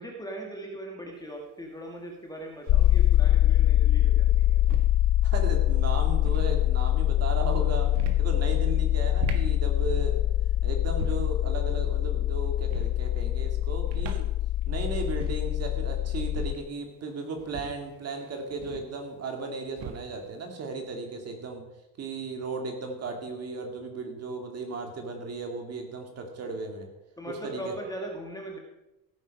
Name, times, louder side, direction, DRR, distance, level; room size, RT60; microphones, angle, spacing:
voice 1, 0.0-4.6 27.2-28.6, right 1 dB, 10° left, 1 dB, 1.5 m, -39 dB
sound 1, 1.1-1.2 2.7-3.1 4.3-5.0 6.0-6.5 7.8-8.3 9.0-9.5 10.8-11.4 12.6-13.0 13.8-14.3 14.6-14.7 15.0-15.5 16.2-16.7 17.4-19.0 19.7-20.2, right 7 dB, 70° right, 1.6 m, -39 dB
sound 2, 2.7-16.5, left 13 dB, 45° left, 0.4 m, -24 dB
voice 2, 5.2-7.9 8.2-10.2 10.6-14.3 14.7-21.7 22.0-26.9 27.3-27.7, right 3 dB, 35° right, 4 dB, 2.4 m, -35 dB
15.5 x 9.4 x 5.3 m, 0.94 s
cardioid pair, 165°, 42 cm